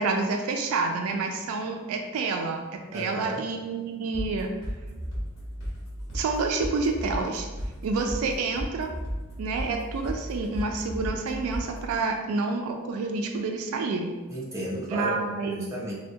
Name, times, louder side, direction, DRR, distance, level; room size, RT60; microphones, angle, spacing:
voice 1, 0.0-4.5 6.1-7.5 7.8-8.9 9.4-14.2 14.9-15.6, right 3 dB, 75° right, 4 dB, 0.3 m, -28 dB
voice 2, 2.9-3.4 14.3-15.9, equal, 15° right, -7 dB, 0.6 m, -33 dB
sound 1, 4.1-12.0, equal, 55° left, 1.0 m, -35 dB
3.6 x 2.2 x 2.7 m, 1.2 s
head